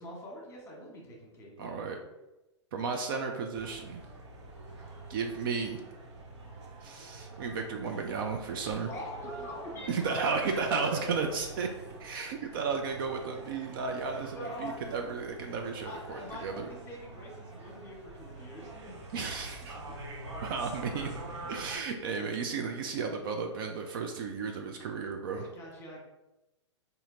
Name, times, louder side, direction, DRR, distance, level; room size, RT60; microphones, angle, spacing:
voice 1, 0.0-1.7 8.9-11.2 12.5-12.6 14.2-14.8 15.8-18.9 19.9-20.0 20.4-20.5 25.3-26.0, equal, 15° left, -2 dB, 1.4 m, -43 dB
voice 2, 1.6-2.0 2.7-4.0 5.1-5.8 6.8-8.9 9.9-11.7 12.0-16.7 19.1-19.8 20.4-21.1 21.5-25.5, right 5 dB, 50° right, 3 dB, 0.5 m, -34 dB
sound 1, 3.5-21.8, right 2 dB, 65° right, 1.0 m, -46 dB
4.2 x 2.7 x 3.7 m, 0.98 s
figure-of-eight pair, 110°, 15 cm